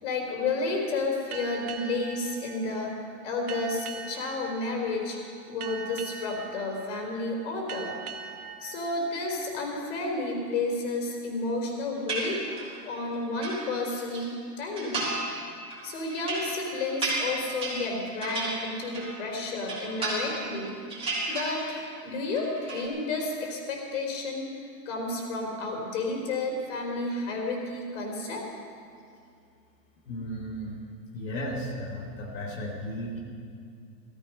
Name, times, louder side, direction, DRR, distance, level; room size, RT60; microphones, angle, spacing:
voice 1, 0.0-5.2 5.5-8.0 8.6-12.6 12.8-15.1 15.8-20.8 21.3-24.5 24.9-28.4, left 3 dB, 45° left, 1 dB, 3.7 m, -31 dB
sound 1, 1.3-10.5, right 7 dB, 60° right, 1.1 m, -43 dB
sound 2, 12.1-12.8 13.1-14.2 14.7-15.4 15.7-19.2 19.5-20.6 20.9-22.0 22.2-22.9, right 2 dB, 10° right, 3.0 m, -33 dB
voice 2, 30.1-30.8 31.1-33.2, equal, 85° left, -3 dB, 2.9 m, -35 dB
16.5 x 14.5 x 5.4 m, 2.4 s
hypercardioid pair, 160°, 50 cm